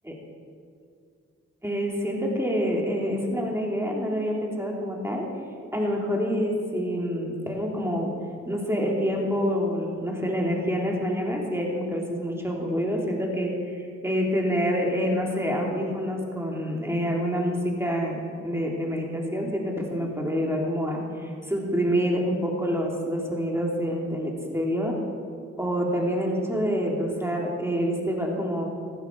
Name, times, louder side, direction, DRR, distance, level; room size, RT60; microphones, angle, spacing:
voice 1, 1.6-5.3 5.7-8.1 8.5-25.0 25.6-28.7, equal, 10° right, -1 dB, 3.4 m, -27 dB
15.0 x 11.5 x 4.8 m, 2.3 s
cardioid pair, 40°, 30 cm